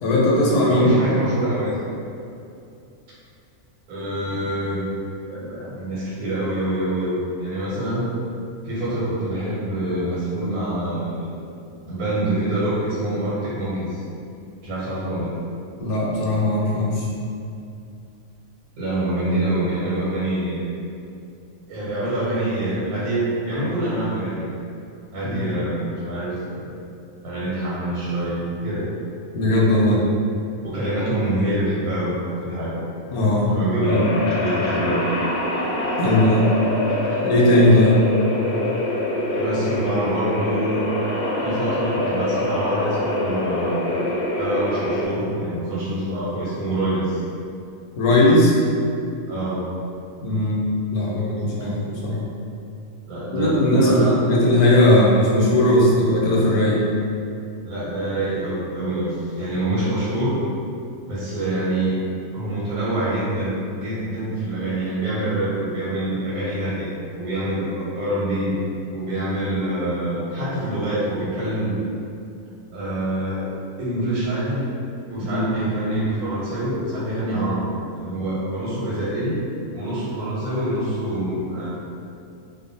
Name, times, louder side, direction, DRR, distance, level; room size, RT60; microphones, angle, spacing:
voice 1, 0.0-0.9 15.8-17.1 25.2-25.6 29.3-30.0 33.1-33.5 33.9-34.1 36.0-36.5 37.2-38.1 48.0-48.6 50.2-52.2 53.3-56.9 59.7-59.8 75.2-75.5, left 1 dB, 85° left, -4 dB, 1.1 m, -18 dB
voice 2, 0.7-1.8 3.9-4.8 5.3-8.1 8.6-11.3 11.9-14.0 14.6-15.3 18.8-20.7 21.7-24.5 25.1-26.7 27.2-28.9 30.6-32.9 33.5-35.0 39.4-40.9 41.4-44.0 44.4-47.2 49.3-49.7 51.6-51.7 53.1-54.4 57.6-60.4 61.1-62.0 62.3-66.9 67.2-68.6 68.9-71.8 72.7-74.7 75.1-79.4 79.7-81.7, right 1 dB, 85° right, -9 dB, 1.2 m, -25 dB
sound 1, 33.8-45.1, left 1 dB, 60° left, 0.6 m, -25 dB
2.5 x 2.2 x 2.6 m, 2.6 s
omnidirectional pair, 1.5 m